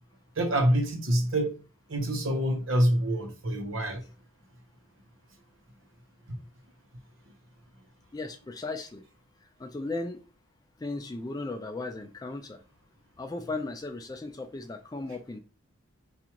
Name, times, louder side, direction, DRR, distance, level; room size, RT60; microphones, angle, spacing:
voice 1, 0.4-1.5 1.9-4.0 6.3-6.4, right 1 dB, 75° right, 0.9 m, -26 dB
voice 2, 8.1-9.0 9.6-10.2 10.8-12.6 13.2-15.4, left 2 dB, 20° left, 0.3 m, -36 dB
4.6 x 2.5 x 2.9 m
head